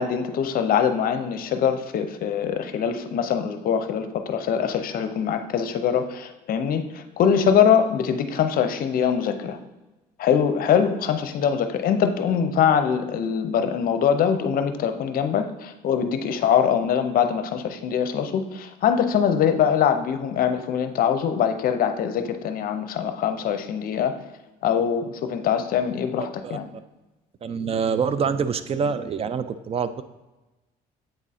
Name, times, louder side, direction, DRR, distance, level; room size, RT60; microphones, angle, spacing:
voice 1, 0.0-9.6 10.2-24.1 24.6-26.7, left 8 dB, 60° left, 9 dB, 0.6 m, -23 dB
voice 2, 27.4-30.0, right 6 dB, 35° right, 12 dB, 0.3 m, -25 dB
7.9 x 3.6 x 4.2 m, 1.1 s
cardioid pair, 110°, 17 cm